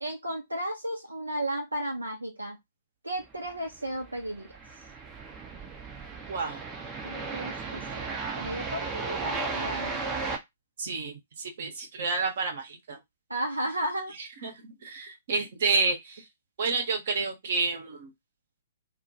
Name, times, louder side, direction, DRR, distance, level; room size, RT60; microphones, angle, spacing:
voice 1, 0.0-2.6 3.0-4.5 7.0-10.0 13.3-14.1 14.4-14.5, right 1 dB, 80° right, 0.5 m, -34 dB
sound 1, 3.7-10.4, right 4 dB, 15° right, 0.5 m, -35 dB
voice 2, 6.3-6.6 10.8-13.0 14.2-16.3 16.6-18.1, right 4 dB, 50° right, 0.7 m, -30 dB
2.1 x 2.1 x 2.7 m
figure-of-eight pair, 120°, 0 cm